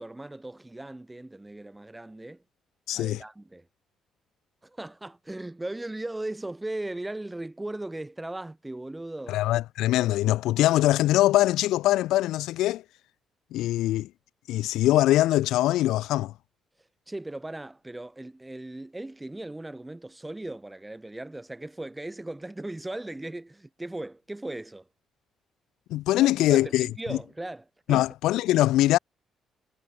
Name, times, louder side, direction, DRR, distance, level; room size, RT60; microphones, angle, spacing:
voice 1, 0.0-2.4 2.9-3.7 4.6-9.4 17.1-24.9 26.2-28.1, right 2 dB, 10° right, 5.6 m, -38 dB
voice 2, 2.9-3.2 9.3-12.8 13.5-14.1 14.5-16.3 25.9-26.9 27.9-29.0, left 15 dB, 90° left, 0.3 m, -22 dB
cardioid pair, 90°, 0 cm